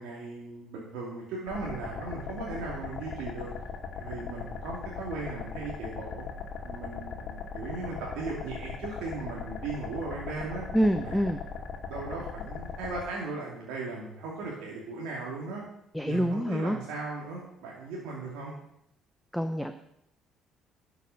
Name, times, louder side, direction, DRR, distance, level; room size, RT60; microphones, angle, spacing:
voice 1, 0.0-3.5 3.9-6.2 6.6-10.6 11.0-11.2 11.9-15.6 16.0-18.5, right 3 dB, 70° right, -4 dB, 2.7 m, -37 dB
sound 1, 1.5-13.0, left 6 dB, 55° left, 2.4 m, -39 dB
voice 2, 10.7-11.4 15.9-16.8 19.3-19.7, equal, ahead, 7 dB, 1.0 m, -26 dB
12.0 x 6.9 x 6.5 m, 0.79 s
hypercardioid pair, 50°, 0 cm